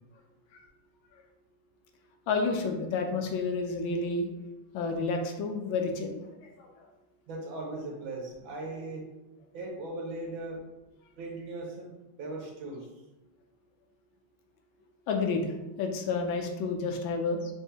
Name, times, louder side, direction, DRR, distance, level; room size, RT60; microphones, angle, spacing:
voice 1, 2.3-4.3 4.7-6.9 15.1-17.5, left 4 dB, 80° left, 4 dB, 1.3 m, -30 dB
voice 2, 7.3-9.0 9.5-10.6 11.2-11.9 12.2-12.8, right 2 dB, 75° right, -1 dB, 1.6 m, -38 dB
3.9 x 3.5 x 2.7 m, 1.0 s
omnidirectional pair, 2.2 m